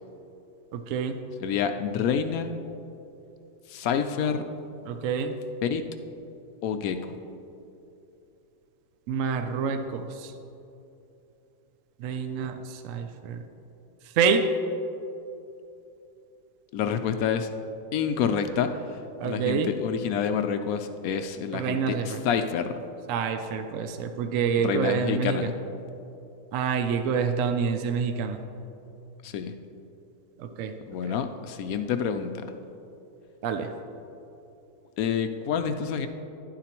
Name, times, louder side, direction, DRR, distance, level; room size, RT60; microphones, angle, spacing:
voice 1, 0.7-1.2 4.9-5.3 9.1-10.3 12.0-12.6 12.8-13.4 14.2-14.5 19.2-19.7 21.5-22.2 23.1-25.4 26.5-28.4 30.4-30.7 31.0-31.1 33.4-33.7, right 6 dB, 70° right, 6 dB, 0.7 m, -27 dB
voice 2, 1.4-2.5 3.7-4.4 5.6-5.8 6.6-7.2 16.7-17.5 17.9-18.7 19.2-22.7 24.6-25.5 29.2-29.5 30.9-32.4 35.0-36.1, left 7 dB, 70° left, 8 dB, 0.8 m, -28 dB
11.5 x 10.5 x 2.9 m, 2.8 s
omnidirectional pair, 1.9 m